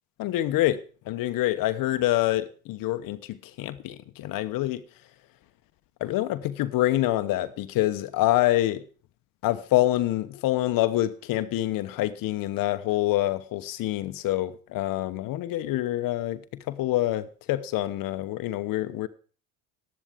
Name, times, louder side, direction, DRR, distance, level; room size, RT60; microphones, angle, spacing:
voice 1, 0.2-0.8 1.1-4.8 6.0-8.8 9.4-16.4 16.7-19.1, left 15 dB, 60° left, 1.0 m, -26 dB
12.5 x 11.0 x 5.0 m
supercardioid pair, 80°, 38 cm